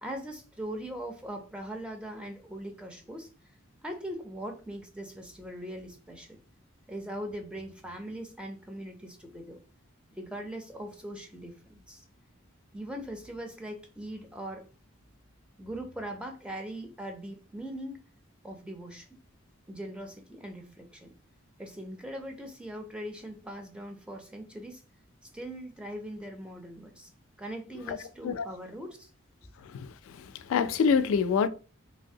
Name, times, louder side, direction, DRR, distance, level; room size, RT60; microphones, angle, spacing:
voice 1, 0.0-3.3 3.8-6.4 6.9-9.6 10.1-12.0 12.7-14.7 15.6-18.0 18.4-19.1 19.7-21.1 21.6-24.8 25.3-27.1 27.4-29.1, right 1 dB, 5° right, 0.4 m, -40 dB
voice 2, 30.5-31.5, left 6 dB, 80° left, 0.3 m, -25 dB
3.2 x 2.7 x 2.7 m
head